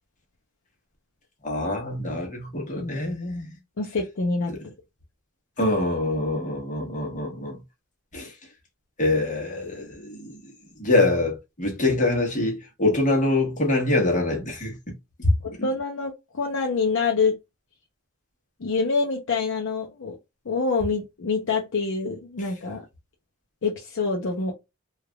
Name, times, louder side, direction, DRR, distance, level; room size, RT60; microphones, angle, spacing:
voice 1, 1.4-3.5 5.6-7.6 8.1-8.3 9.0-10.5 10.8-14.9 15.2-15.3, left 2 dB, 35° left, 1.1 m, -24 dB
voice 2, 3.8-4.5 15.4-17.4 18.6-20.2 20.5-22.8 23.6-24.5, left 4 dB, 60° left, 0.6 m, -26 dB
3.2 x 2.4 x 2.2 m
head